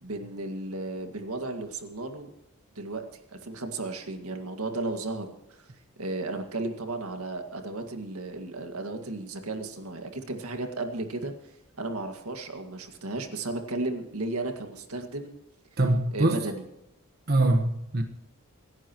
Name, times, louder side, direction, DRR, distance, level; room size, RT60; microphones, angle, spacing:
voice 1, 0.0-2.3 2.8-5.3 5.6-5.7 6.0-11.3 11.8-15.3 16.1-16.6, right 2 dB, 80° right, 2.0 m, -34 dB
voice 2, 15.8-16.4 17.3-18.0, right 2 dB, 45° right, 1.2 m, -23 dB
26.0 x 11.0 x 3.0 m
head